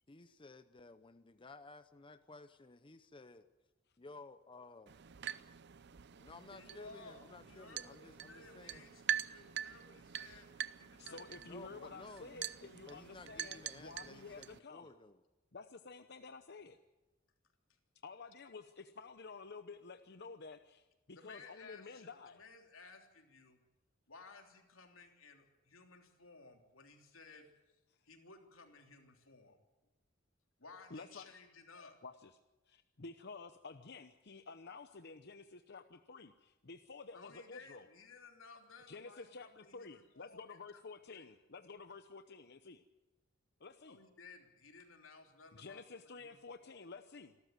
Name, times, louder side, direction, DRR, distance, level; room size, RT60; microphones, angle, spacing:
voice 1, 0.1-3.5 4.0-4.9 6.2-8.9 11.4-15.2, left 3 dB, 25° left, 11 dB, 0.7 m, -55 dB
sound 1, 4.9-14.6, right 10 dB, 55° right, 0.6 m, -44 dB
voice 2, 6.5-12.2 21.1-23.6 24.1-27.5 28.0-29.6 30.6-32.0 37.1-40.8 41.1-41.3 43.9-46.7, left 4 dB, 90° left, 4 dB, 3.3 m, -58 dB
voice 3, 11.0-14.9 15.5-16.8 18.0-22.4 30.9-31.3 32.0-32.4 32.7-37.9 38.9-42.8 43.6-44.0 45.5-47.3, left 4 dB, 55° left, 8 dB, 0.9 m, -51 dB
26.5 x 13.5 x 9.4 m, 1.1 s
head